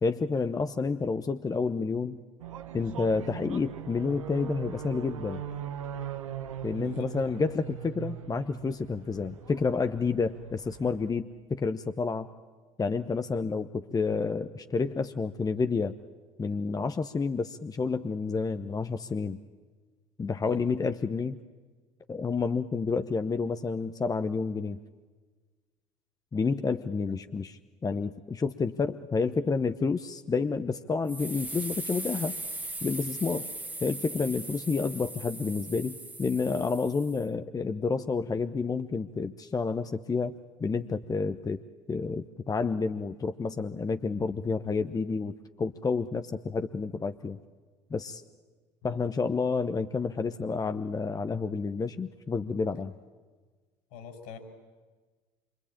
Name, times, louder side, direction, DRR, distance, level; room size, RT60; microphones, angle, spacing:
voice 1, 0.0-2.2 2.7-5.4 6.6-12.3 12.8-15.9 16.4-19.4 20.2-21.4 22.1-24.8 26.3-32.3 32.8-33.5 33.8-40.3 40.6-41.6 41.9-47.4 47.9-48.2 48.8-52.9, left 4 dB, 20° left, 9 dB, 0.9 m, -29 dB
sound 1, 2.4-11.1, right 9 dB, 85° right, 1.3 m, -40 dB
voice 2, 6.8-7.4 20.4-20.6 27.1-27.2 48.8-49.0 53.9-54.4, left 5 dB, 65° left, 6 dB, 5.5 m, -45 dB
sound 2, 31.1-37.2, right 2 dB, 10° right, 1.5 m, -39 dB
26.5 x 24.5 x 8.7 m, 1.4 s
hypercardioid pair, 70°, 17 cm